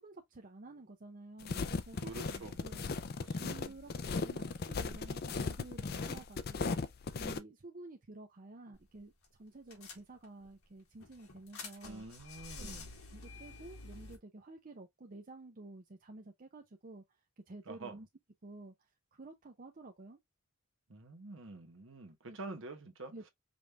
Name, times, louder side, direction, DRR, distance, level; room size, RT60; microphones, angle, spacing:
voice 1, 0.0-6.8 7.1-12.1 12.6-12.7 13.1-17.0 17.5-18.1 18.4-20.2 22.3-22.6 23.1-23.3, right 2 dB, 40° right, 0.6 m, -52 dB
sound 1, 1.4-7.4, left 4 dB, 45° left, 0.4 m, -37 dB
voice 2, 2.0-2.6 3.2-3.5 11.8-12.9 17.7-17.9 20.9-23.1, right 2 dB, 60° right, 1.0 m, -47 dB
sound 2, 8.7-9.0 9.2-9.3 9.7-10.5 11.0-14.2, left 3 dB, 85° left, 1.7 m, -49 dB
5.2 x 2.5 x 3.2 m
head